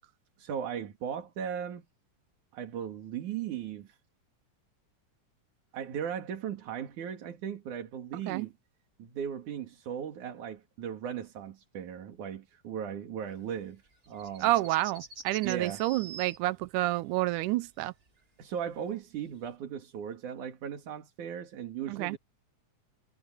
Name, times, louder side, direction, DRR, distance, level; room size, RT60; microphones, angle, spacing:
voice 1, 0.4-1.9 2.5-4.0 5.7-8.5 9.0-14.5 15.4-15.8 18.4-22.2, right 8 dB, 75° right, 3.6 m, -37 dB
sound 1, 13.7-16.4 18.4-18.5 19.4-19.5, right 5 dB, 25° right, 1.7 m, -46 dB
voice 2, 14.4-17.9 21.9-22.2, right 17 dB, 90° right, 2.1 m, -29 dB
omnidirectional pair, 3.6 m